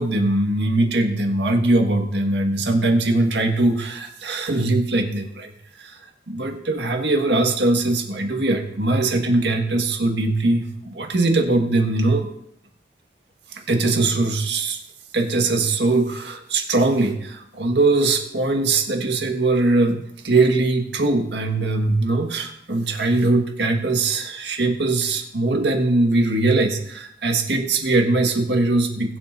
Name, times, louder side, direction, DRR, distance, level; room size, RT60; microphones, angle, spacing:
voice 1, 0.0-5.5 5.8-5.9 6.3-12.3 13.7-14.8 15.1-29.2, right 2 dB, 80° right, 3 dB, 1.6 m, -21 dB
22.0 x 7.6 x 2.6 m, 0.74 s
head